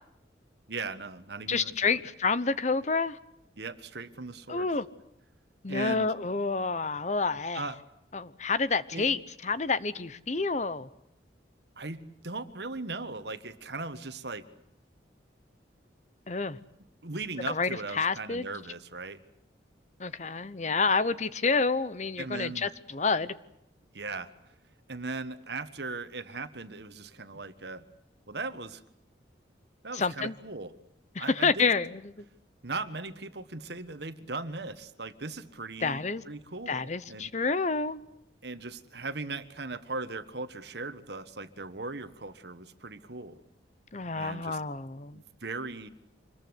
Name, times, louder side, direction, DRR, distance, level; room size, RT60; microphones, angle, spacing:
voice 1, 0.7-2.0 3.6-4.7 5.7-6.1 7.5-7.8 8.9-9.1 11.8-14.4 17.0-19.2 22.2-22.7 23.9-24.3 24.9-27.8 28.3-28.8 29.8-30.7 31.2-31.7 32.6-37.3 38.4-43.4 44.1-44.6 45.1-45.9, right 3 dB, 65° right, 1.5 m, -38 dB
voice 2, 1.5-3.2 4.5-4.8 5.6-7.6 8.1-10.9 16.3-16.6 17.5-18.5 20.0-23.3 29.9-30.3 31.1-32.1 35.8-36.2 36.7-38.0 43.9-45.2, left 4 dB, 40° left, 0.9 m, -29 dB
26.0 x 21.5 x 8.1 m
head